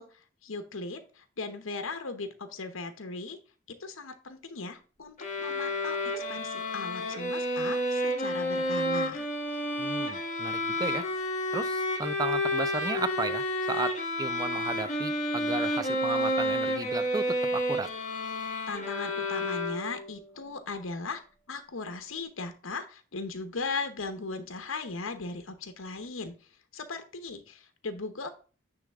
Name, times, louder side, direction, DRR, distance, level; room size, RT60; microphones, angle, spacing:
voice 1, 0.0-3.4 3.7-9.3 18.7-21.2 21.5-28.3, left 3 dB, 75° left, 1.0 m, -38 dB
sound 1, 5.2-20.1, left 1 dB, 35° left, 1.6 m, -30 dB
voice 2, 9.8-11.1 11.5-17.9, right 3 dB, 20° right, 0.4 m, -34 dB
9.7 x 3.4 x 3.5 m
head